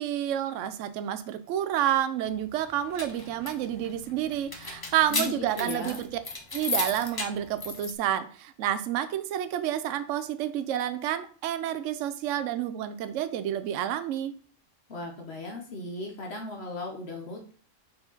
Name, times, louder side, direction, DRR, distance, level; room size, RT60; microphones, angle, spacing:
voice 1, 0.0-6.1 6.5-14.3, right 11 dB, 70° right, 11 dB, 0.9 m, -29 dB
sound 1, 2.7-7.9, left 3 dB, 25° left, 0.5 m, -35 dB
voice 2, 5.1-6.0 14.9-17.5, left 2 dB, 55° left, 2 dB, 1.2 m, -37 dB
5.0 x 4.8 x 3.9 m, 0.42 s
omnidirectional pair, 1.4 m